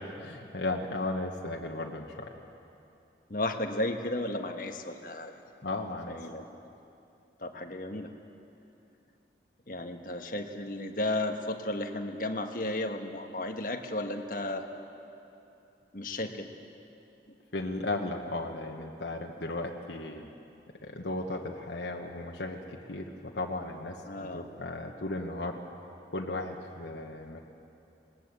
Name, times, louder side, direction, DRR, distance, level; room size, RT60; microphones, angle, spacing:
voice 1, 0.0-2.3 5.6-6.2 17.5-20.3 20.8-24.0 24.3-25.6 26.1-27.4, left 2 dB, 85° left, 0 dB, 1.4 m, -35 dB
voice 2, 3.3-5.3 6.1-6.6 7.4-8.1 9.7-14.7 15.9-16.5 24.1-24.5, left 1 dB, 50° left, 5 dB, 1.4 m, -34 dB
20.5 x 19.5 x 8.5 m, 2.7 s
head